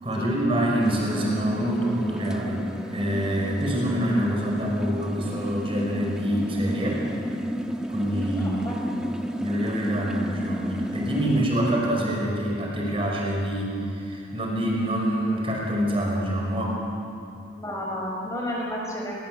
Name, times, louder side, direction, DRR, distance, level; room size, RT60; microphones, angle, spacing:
voice 1, 0.0-7.0 7.9-9.1 9.4-16.8, right 1 dB, 30° right, -1 dB, 5.4 m, -26 dB
sound 1, 0.8-11.5, equal, 5° right, 1.3 m, -32 dB
voice 2, 8.3-9.0 17.6-19.2, equal, 15° left, -2 dB, 5.5 m, -32 dB
27.5 x 22.5 x 7.7 m, 2.7 s
head